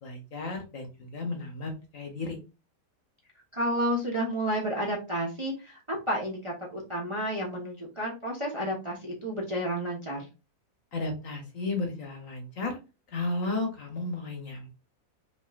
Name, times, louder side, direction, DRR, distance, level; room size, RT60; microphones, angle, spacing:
voice 1, 0.0-2.4 10.9-12.8 13.1-14.7, left 2 dB, 55° left, 3 dB, 1.3 m, -33 dB
voice 2, 3.5-10.3, equal, 25° right, -1 dB, 0.8 m, -31 dB
5.3 x 3.1 x 2.4 m, 0.29 s
omnidirectional pair, 1.9 m